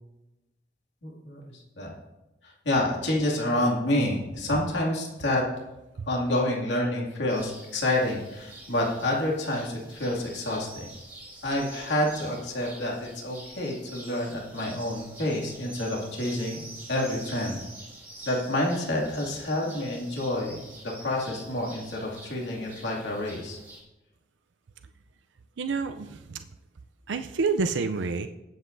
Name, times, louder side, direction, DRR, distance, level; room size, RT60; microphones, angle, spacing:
voice 1, 1.0-1.9 2.4-5.4 6.0-10.9 11.4-16.6 16.9-17.6 18.2-20.7 21.0-23.6, left 1 dB, 80° left, -3 dB, 2.3 m, -28 dB
sound 1, 7.3-23.8, right 2 dB, 10° right, 2.1 m, -46 dB
voice 2, 25.6-26.4 27.1-28.3, right 4 dB, 80° right, 8 dB, 0.5 m, -28 dB
20.0 x 8.0 x 2.6 m, 1.0 s
head